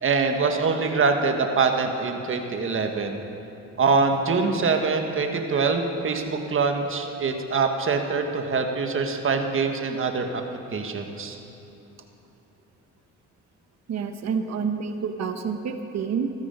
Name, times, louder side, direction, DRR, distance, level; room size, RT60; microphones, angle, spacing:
voice 1, 0.0-3.2 3.8-10.4 10.7-11.4, right 4 dB, 45° right, 4 dB, 1.5 m, -24 dB
voice 2, 13.9-16.3, right 6 dB, 60° right, 7 dB, 1.1 m, -28 dB
15.0 x 13.5 x 5.3 m, 3.0 s
cardioid pair, 90°, 30 cm